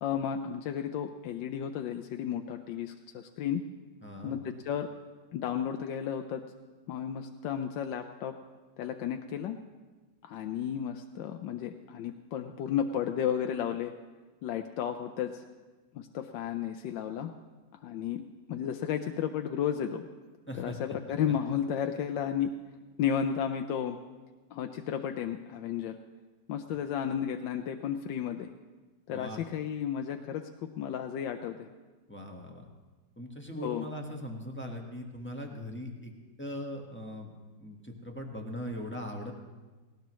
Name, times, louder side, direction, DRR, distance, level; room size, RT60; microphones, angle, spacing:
voice 1, 0.0-3.6 4.2-4.9 5.3-6.4 6.9-8.3 8.8-9.6 10.2-13.9 14.4-15.4 15.9-17.3 17.8-18.2 18.5-20.1 20.6-22.5 23.0-24.0 24.5-26.0 26.5-28.5 29.1-31.7 33.6-33.9, left 9 dB, 80° left, 5 dB, 1.3 m, -33 dB
voice 2, 4.0-4.4 20.5-20.8 29.1-29.4 32.1-32.6 33.2-36.1 36.4-37.3 37.6-39.3, equal, 5° left, 1 dB, 1.2 m, -40 dB
18.5 x 18.0 x 3.1 m, 1.3 s
omnidirectional pair, 2.0 m